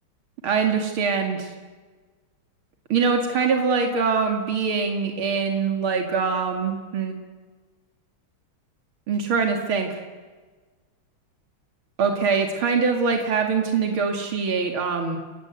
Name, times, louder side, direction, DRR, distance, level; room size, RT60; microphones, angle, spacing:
voice 1, 0.4-1.5 2.9-7.1 9.1-10.0 12.0-15.2, right 5 dB, 85° right, 4 dB, 3.1 m, -23 dB
30.0 x 19.5 x 8.1 m, 1.4 s
omnidirectional pair, 2.2 m